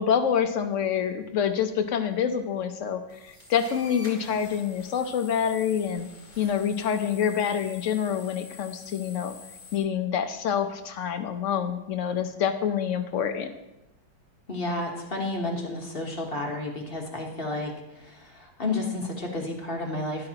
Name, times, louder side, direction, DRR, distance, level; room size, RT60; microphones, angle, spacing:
voice 1, 0.0-6.1 6.4-9.3 9.7-13.5, left 8 dB, 55° left, 8 dB, 0.9 m, -27 dB
sound 1, 3.1-9.8, left 3 dB, 25° right, 3.3 m, -47 dB
voice 2, 14.5-20.3, left 2 dB, 35° left, 1 dB, 1.3 m, -31 dB
13.0 x 10.5 x 2.9 m, 0.92 s
omnidirectional pair, 1.9 m